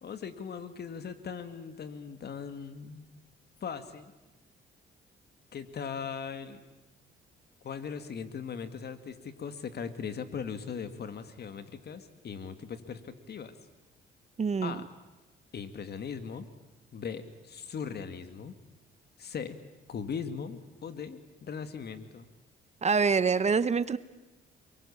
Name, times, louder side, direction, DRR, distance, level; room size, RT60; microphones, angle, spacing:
voice 1, 0.0-3.1 3.6-4.1 5.5-6.6 7.6-13.5 14.6-14.9 15.5-16.5 16.9-18.5 19.2-19.6 19.9-22.3, left 6 dB, 55° left, 10 dB, 2.1 m, -39 dB
voice 2, 14.4-14.8 22.8-24.0, right 5 dB, 35° right, 15 dB, 1.0 m, -25 dB
29.0 x 22.5 x 8.7 m, 1.1 s
cardioid pair, 90°, 20 cm